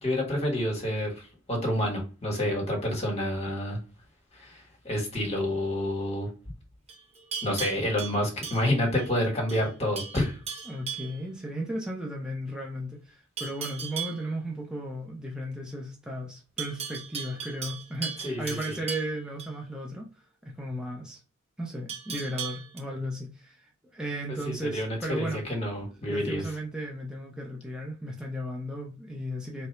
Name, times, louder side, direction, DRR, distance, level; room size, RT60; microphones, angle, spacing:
voice 1, 0.0-3.8 4.3-6.3 7.4-10.4 18.2-18.8 24.5-26.4, left 1 dB, 30° left, 1.4 m, -29 dB
Livestock farm animals working animals, 6.9-9.1 9.5-9.7 10.0-11.2 13.4-14.2 16.6-19.5 21.9-22.8, right 6 dB, 30° right, 1.0 m, -37 dB
voice 2, 10.7-20.1 20.4-21.2 21.6-25.4 26.0-29.7, right 1 dB, 5° right, 0.8 m, -35 dB
3.2 x 2.7 x 4.4 m
head